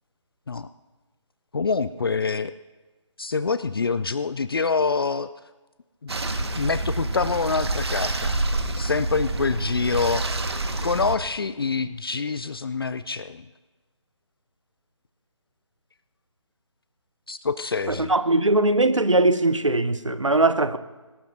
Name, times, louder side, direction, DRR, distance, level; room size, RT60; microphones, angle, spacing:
voice 1, 1.5-2.5 3.2-5.3 6.0-8.4 8.8-10.3 10.8-13.4 17.3-18.1, left 4 dB, 50° left, 0.5 m, -26 dB
sound 1, 6.1-11.2, right 2 dB, 55° right, 1.5 m, -27 dB
voice 2, 17.9-20.8, right 2 dB, 80° right, 0.9 m, -20 dB
26.0 x 18.5 x 2.7 m
figure-of-eight pair, 150°, 16 cm